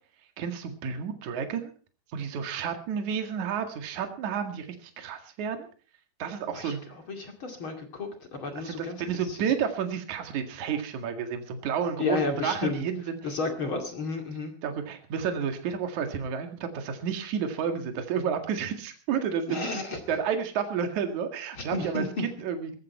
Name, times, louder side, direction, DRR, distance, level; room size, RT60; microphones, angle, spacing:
voice 1, 0.4-1.7 2.1-5.7 6.2-6.8 8.6-13.2 14.6-19.7 20.1-22.8, right 7 dB, 55° right, 6 dB, 3.1 m, -31 dB
voice 2, 7.1-9.0 9.3-9.4 12.0-12.8 13.2-14.5 19.5-20.0 21.6-22.2, left 3 dB, 40° left, 4 dB, 2.7 m, -32 dB
18.5 x 14.0 x 4.3 m, 0.39 s
omnidirectional pair, 4.4 m